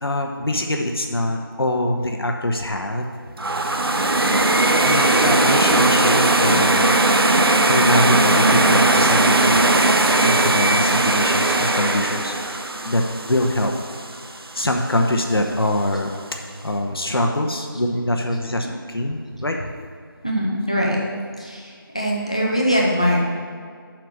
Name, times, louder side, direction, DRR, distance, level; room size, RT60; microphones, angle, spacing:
voice 1, 0.0-3.0 4.1-6.9 7.7-9.7 10.2-13.0 13.3-13.7 14.5-16.1 16.4-19.7, left 1 dB, 85° left, 2 dB, 1.0 m, -24 dB
sound 1, 3.4-14.4, right 2 dB, 80° right, 0.7 m, -18 dB
voice 2, 20.2-21.0 21.4-21.6 21.9-23.2, equal, 15° left, -2 dB, 0.6 m, -21 dB
6.1 x 5.9 x 6.6 m, 2.1 s
figure-of-eight pair, 175°, 12 cm